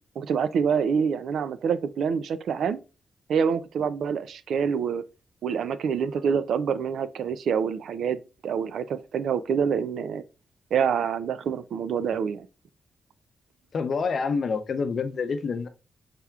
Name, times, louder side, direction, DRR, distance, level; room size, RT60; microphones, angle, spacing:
voice 1, 0.2-2.8 3.3-5.0 5.4-10.2 10.7-12.5, right 7 dB, 80° right, 0.3 m, -26 dB
voice 2, 13.7-15.7, left 5 dB, 55° left, 0.6 m, -27 dB
5.7 x 3.4 x 2.3 m
cardioid pair, 115°, 0 cm